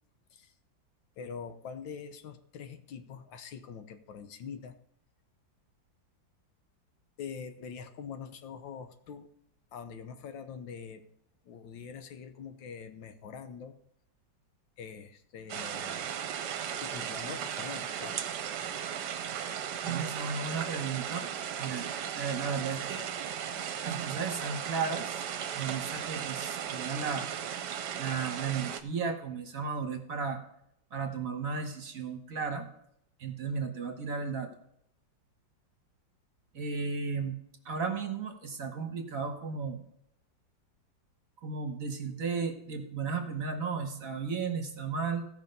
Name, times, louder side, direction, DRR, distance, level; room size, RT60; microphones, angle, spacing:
voice 1, 1.2-4.7 7.2-9.3 9.7-11.0 11.4-13.7 14.8-16.1 16.8-18.2, left 6 dB, 80° left, 8 dB, 1.7 m, -44 dB
sound 1, 15.5-28.8, right 9 dB, 70° right, 1.3 m, -36 dB
voice 2, 19.8-21.3 21.6-23.1 23.8-25.2 25.5-27.3 28.0-30.4 30.9-32.7 33.2-34.5 36.5-37.3 37.6-39.8 41.4-45.3, right 5 dB, 50° right, 5 dB, 1.5 m, -34 dB
16.0 x 5.7 x 5.3 m, 0.71 s
omnidirectional pair, 2.0 m